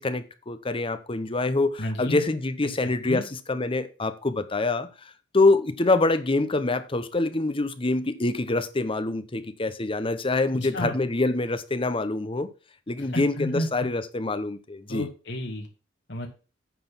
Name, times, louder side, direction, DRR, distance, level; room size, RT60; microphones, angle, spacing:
voice 1, 0.0-12.5 12.9-15.1, left 2 dB, 30° left, 0.8 m, -25 dB
voice 2, 1.8-2.2 2.6-2.8 3.0-3.2 10.5-11.0 13.0-13.7 14.9-15.7 16.1-16.3, left 1 dB, 65° left, 1.9 m, -31 dB
9.3 x 4.1 x 7.4 m
head